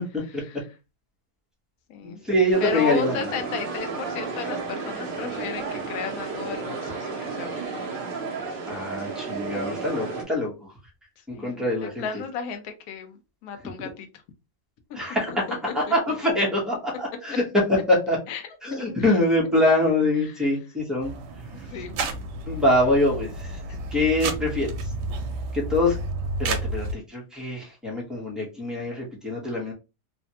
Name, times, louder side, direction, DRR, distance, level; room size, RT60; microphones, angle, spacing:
voice 1, 0.2-0.7 1.9-2.2 2.6-8.0 11.3-13.2 13.4-14.1 15.3-15.4 15.9-16.0 18.3-18.6 18.9-19.1 19.4-19.5 20.2-20.4 21.7-22.0, left 6 dB, 65° left, 6 dB, 1.0 m, -34 dB
voice 2, 2.3-3.1 8.7-10.5 11.4-12.1 15.0-15.3 15.7-17.3 17.9-18.2 18.6-21.1 22.5-23.3 23.9-24.7 25.5-25.9 26.4-29.7, left 1 dB, ahead, -5 dB, 0.5 m, -24 dB
sound 1, 2.5-10.2, right 4 dB, 55° right, 0.6 m, -32 dB
sound 2, 21.0-26.9, right 2 dB, 75° right, 1.2 m, -31 dB
3.2 x 2.2 x 2.8 m, 0.28 s
omnidirectional pair, 1.9 m